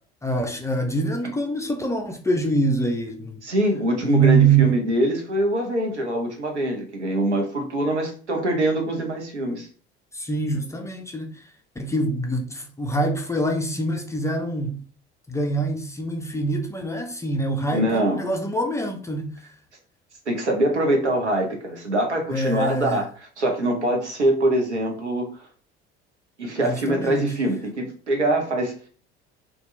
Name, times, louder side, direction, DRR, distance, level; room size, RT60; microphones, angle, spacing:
voice 1, 0.2-3.4 4.0-4.7 10.1-11.5 11.8-14.8 15.3-19.5 22.3-23.0 26.6-27.4, right 3 dB, 10° left, 0.4 m, -24 dB
voice 2, 3.4-9.7 17.7-18.2 20.3-23.1 23.4-25.3 26.4-28.7, right 1 dB, 85° right, 0.7 m, -23 dB
2.8 x 2.2 x 3.0 m
figure-of-eight pair, 60°, 33 cm